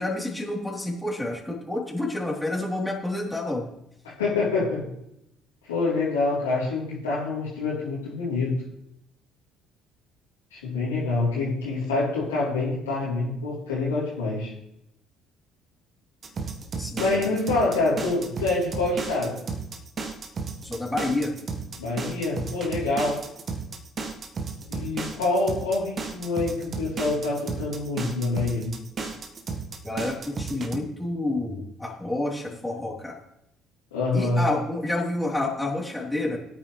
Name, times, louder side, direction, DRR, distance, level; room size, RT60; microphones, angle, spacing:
voice 1, 0.0-3.7 16.7-17.2 20.6-21.3 29.8-33.2 34.1-36.4, left 2 dB, 5° left, -3 dB, 3.5 m, -29 dB
voice 2, 4.2-4.8 5.7-8.6 10.5-14.5 17.0-19.4 21.8-23.2 24.7-28.7 33.9-34.4, left 3 dB, 80° left, -7 dB, 3.4 m, -26 dB
sound 1, 16.2-30.8, right 4 dB, 40° right, 1.4 m, -34 dB
16.5 x 8.9 x 3.3 m, 0.78 s
figure-of-eight pair, 50°, 0 cm